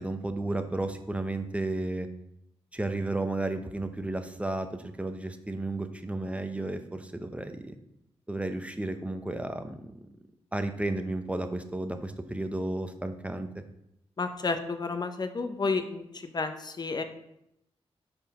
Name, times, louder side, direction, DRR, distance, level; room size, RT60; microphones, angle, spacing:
voice 1, 0.0-2.1 2.7-7.7 8.3-9.9 10.5-13.6, right 2 dB, 10° right, 8 dB, 0.8 m, -33 dB
voice 2, 14.2-16.0 16.3-17.0, left 4 dB, 40° left, 7 dB, 0.8 m, -31 dB
5.5 x 4.5 x 5.5 m, 0.80 s
cardioid pair, 60°, 11 cm